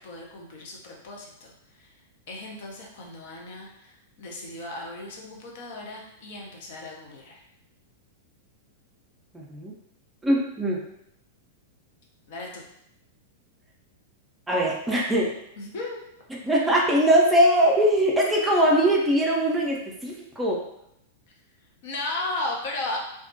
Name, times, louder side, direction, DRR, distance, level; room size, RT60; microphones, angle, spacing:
voice 1, 0.0-1.9 2.3-7.4 12.3-12.6 15.6-16.0 21.8-23.0, left 2 dB, 50° left, -1 dB, 0.5 m, -35 dB
voice 2, 9.3-9.7 10.2-10.8 14.5-15.3 16.4-20.6, right 1 dB, 10° right, -3 dB, 0.5 m, -21 dB
2.2 x 2.0 x 2.7 m, 0.79 s
figure-of-eight pair, 95°, 0 cm